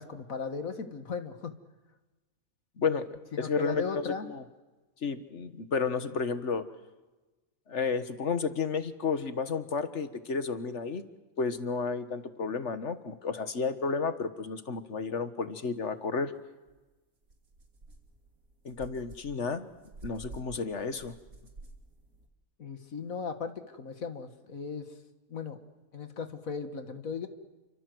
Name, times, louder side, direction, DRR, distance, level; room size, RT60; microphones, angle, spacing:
voice 1, 0.0-1.5 3.3-4.3 22.6-24.9 25.3-25.6 25.9-27.3, left 5 dB, 75° left, 8 dB, 2.1 m, -37 dB
voice 2, 2.8-4.4 5.0-6.7 7.7-11.0 11.4-16.3 18.6-19.7 20.0-21.1, left 5 dB, 55° left, 11 dB, 1.9 m, -32 dB
sound 1, 16.7-16.8 17.2-22.3, right 2 dB, 85° right, 3.6 m, -50 dB
29.5 x 25.0 x 8.0 m, 1.1 s
omnidirectional pair, 1.4 m